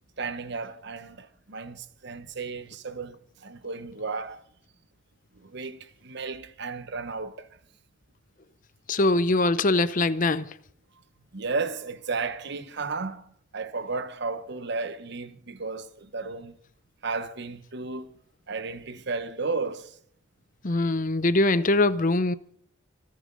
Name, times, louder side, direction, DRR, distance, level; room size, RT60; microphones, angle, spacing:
voice 1, 0.2-4.4 5.4-7.5 11.3-16.6 17.0-18.1 18.5-20.0, right 4 dB, 55° right, 1.2 m, -34 dB
voice 2, 8.9-10.4 20.6-22.3, left 2 dB, 40° left, 0.7 m, -22 dB
25.5 x 9.6 x 4.0 m
head